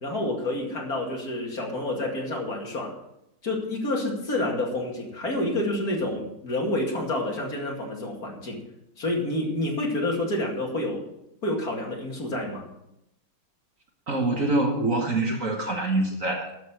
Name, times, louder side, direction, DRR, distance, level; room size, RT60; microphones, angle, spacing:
voice 1, 0.0-2.9 3.4-8.6 9.0-11.0 11.4-12.7, left 1 dB, 50° left, 0 dB, 2.8 m, -28 dB
voice 2, 14.1-16.5, right 2 dB, 45° right, 2 dB, 1.4 m, -25 dB
12.0 x 6.8 x 6.7 m, 0.83 s
omnidirectional pair, 2.2 m